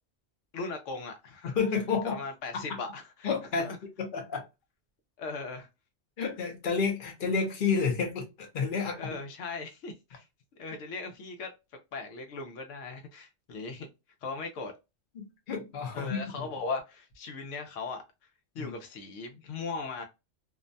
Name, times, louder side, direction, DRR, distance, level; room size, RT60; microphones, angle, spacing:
voice 1, 0.5-1.6 2.0-3.3 3.6-3.8 5.2-5.7 8.9-10.2 10.6-11.5 11.9-13.9 14.2-14.7 15.9-18.0 18.5-20.0, left 4 dB, 85° left, 1.0 m, -38 dB
voice 2, 1.4-2.2 3.2-3.7 4.0-4.5 6.2-9.2 15.2-16.5 18.6-18.8, left 5 dB, 50° left, 0.8 m, -30 dB
2.6 x 2.1 x 2.5 m
omnidirectional pair, 1.2 m